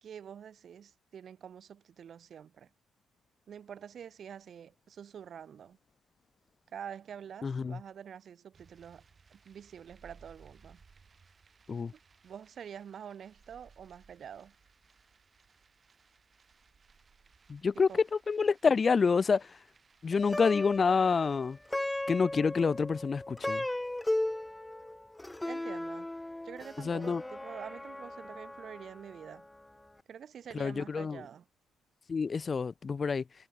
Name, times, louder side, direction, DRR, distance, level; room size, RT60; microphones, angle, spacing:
voice 1, 0.0-2.7 3.5-5.8 6.7-9.0 9.3-10.8 11.9-14.5 17.9-18.0 25.5-26.1 26.4-29.5 30.1-31.5, right 8 dB, 60° right, 0.9 m, -47 dB
voice 2, 7.4-7.8 11.7-11.9 17.5-19.5 20.0-21.6 22.1-23.6 26.8-27.2 30.5-31.2 32.1-33.2, left 5 dB, 40° left, 0.5 m, -28 dB
sound 1, 8.5-21.7, right 5 dB, 40° right, 3.2 m, -62 dB
Plucked string instrument, 20.1-29.5, left 1 dB, 10° left, 1.6 m, -37 dB
supercardioid pair, 60°, 0 cm